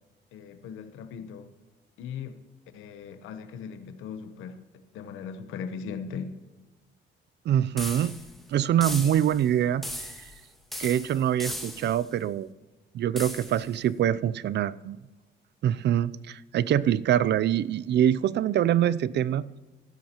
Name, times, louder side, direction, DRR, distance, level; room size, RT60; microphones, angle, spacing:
voice 1, 0.3-1.5 2.0-2.4 2.7-4.6 4.9-6.3, left 6 dB, 90° left, 10 dB, 1.0 m, -38 dB
voice 2, 7.5-8.2 8.5-9.9 10.8-12.5 12.9-15.0 15.6-19.4, right 10 dB, 60° right, 19 dB, 0.5 m, -24 dB
sound 1, 7.8-8.4 8.8-9.4 9.8-10.4 10.7-12.0 13.2-13.7, equal, ahead, 2.0 m, -37 dB
15.5 x 13.0 x 3.0 m, 1.1 s
cardioid pair, 90°, 20 cm